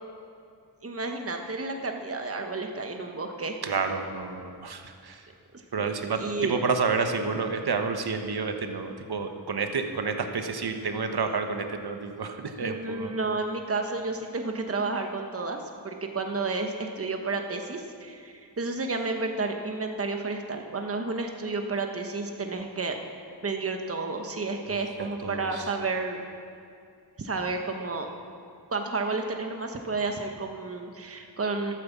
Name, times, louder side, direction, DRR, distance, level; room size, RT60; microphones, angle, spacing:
voice 1, 0.8-3.6 5.8-6.5 12.6-15.6 15.8-23.0 23.4-26.2 27.2-28.1 28.7-31.7, right 3 dB, 35° right, 4 dB, 1.2 m, -31 dB
voice 2, 3.6-5.2 5.7-13.1 24.7-25.7, right 4 dB, 65° right, 6 dB, 1.2 m, -30 dB
12.5 x 9.1 x 7.3 m, 2.4 s
cardioid pair, 60°, 42 cm